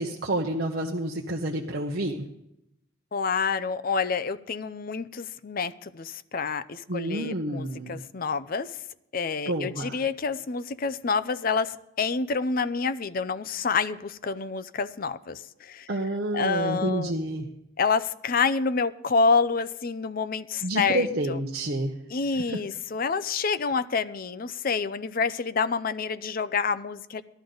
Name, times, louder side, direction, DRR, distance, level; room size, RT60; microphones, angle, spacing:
voice 1, 0.0-2.3 6.9-8.0 9.5-10.0 15.9-17.5 20.6-21.9 22.3-22.4, right 1 dB, 50° right, 0 dB, 0.9 m, -29 dB
voice 2, 3.1-8.8 9.1-15.9 16.3-17.1 17.8-21.4 22.1-27.2, left 5 dB, 45° left, 13 dB, 0.5 m, -28 dB
17.5 x 12.5 x 3.9 m, 0.83 s
head